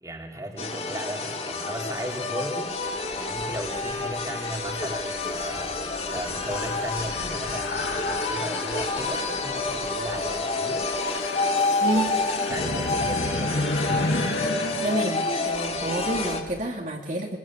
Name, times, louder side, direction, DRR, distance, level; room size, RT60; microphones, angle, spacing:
voice 1, 0.0-2.8 3.1-5.8 6.1-10.9 12.5-13.7, equal, 20° right, 1 dB, 3.0 m, -36 dB
sound 1, 0.6-16.4, left 3 dB, 35° left, 2.0 m, -28 dB
sound 2, 2.8-16.7, left 2 dB, 70° left, 1.5 m, -34 dB
voice 2, 11.8-12.1 14.8-17.4, right 1 dB, 45° right, 0 dB, 2.7 m, -29 dB
23.5 x 21.5 x 7.4 m, 1.2 s
head